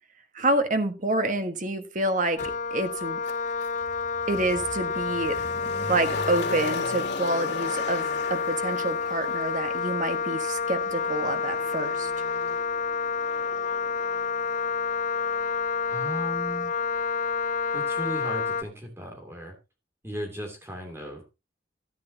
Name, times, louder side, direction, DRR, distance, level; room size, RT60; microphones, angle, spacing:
voice 1, 0.3-2.4 2.7-3.2 4.3-5.4 5.9-12.1, right 2 dB, 45° right, 7 dB, 1.5 m, -28 dB
Motor vehicle (road), 2.4-2.5 3.2-16.2 16.4-16.5, left 2 dB, 75° left, 2.5 m, -39 dB
Wind instrument woodwind instrument, 2.4-18.6, left 5 dB, 45° left, 0.6 m, -29 dB
voice 2, 15.9-16.7 17.7-19.5 20.0-21.2, equal, 15° right, 2 dB, 2.8 m, -36 dB
13.5 x 9.8 x 2.9 m, 0.26 s
head